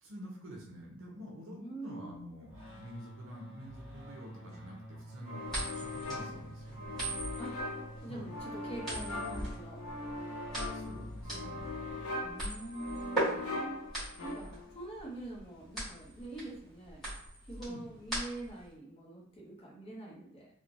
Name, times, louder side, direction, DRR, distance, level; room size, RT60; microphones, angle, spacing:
voice 1, 0.0-7.1 8.1-8.2 10.7-11.7 17.7-17.9, equal, 65° right, -2 dB, 0.6 m, -48 dB
voice 2, 1.5-2.2 7.4-7.6 8.0-9.8 12.2-13.8 14.2-17.1 17.5-20.5, right 2 dB, 25° left, -3 dB, 0.6 m, -44 dB
sound 1, 2.5-12.7, right 1 dB, 35° right, 1.1 m, -49 dB
sound 2, 5.3-14.8, left 2 dB, 80° left, 0.5 m, -41 dB
sound 3, 5.5-18.7, right 1 dB, ahead, 1.3 m, -39 dB
3.1 x 2.1 x 2.5 m, 0.71 s
head